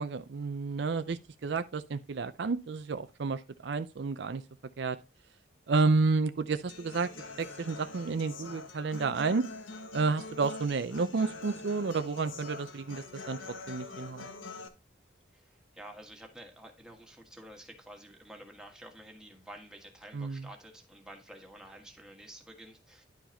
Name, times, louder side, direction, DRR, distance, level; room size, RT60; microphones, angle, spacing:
voice 1, 0.0-4.4 4.8-5.0 5.7-7.1 7.4-9.4 9.9-13.4 13.7-14.3 20.1-20.4, right 4 dB, 60° right, 0.5 m, -30 dB
Human voice / Acoustic guitar, 6.7-14.7, left 3 dB, 90° left, 1.4 m, -44 dB
voice 2, 15.3-23.0, right 1 dB, 5° right, 1.6 m, -50 dB
11.0 x 4.7 x 4.3 m
head